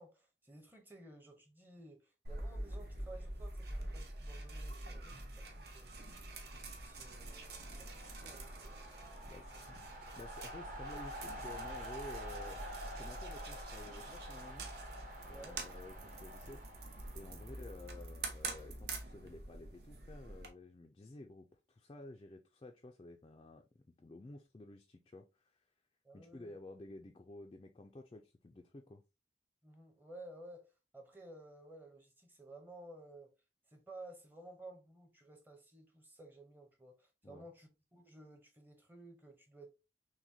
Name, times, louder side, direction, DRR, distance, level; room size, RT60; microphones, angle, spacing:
voice 1, 0.0-6.0 6.5-8.9 15.3-15.6 17.3-17.6 26.0-26.6 29.6-33.3 33.7-39.7, right 2 dB, 10° right, 0.7 m, -55 dB
sound 1, 2.2-20.5, right 2 dB, 65° right, 0.8 m, -46 dB
sound 2, 6.3-18.2, right 1 dB, 45° right, 1.1 m, -49 dB
voice 2, 9.2-9.8 10.2-12.6 13.0-14.7 15.2-16.6 17.1-25.6 26.1-29.0 37.2-37.5, left 2 dB, 25° left, 0.3 m, -52 dB
5.9 x 2.2 x 2.6 m
head